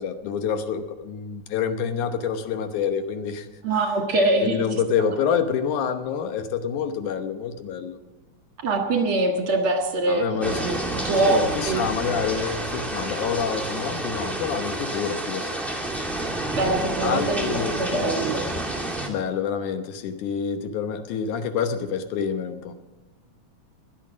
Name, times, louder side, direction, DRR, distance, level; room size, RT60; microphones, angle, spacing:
voice 1, 0.0-3.5 4.4-8.0 10.1-10.8 11.2-15.6 17.0-18.1 19.1-22.7, left 7 dB, 90° left, 8 dB, 2.5 m, -27 dB
voice 2, 3.6-4.6 8.6-11.8 16.6-18.5, right 2 dB, 50° right, 3 dB, 2.3 m, -24 dB
sound 1, 10.4-19.1, right 1 dB, ahead, 1.4 m, -29 dB
22.0 x 8.3 x 6.2 m, 1.1 s
omnidirectional pair, 3.4 m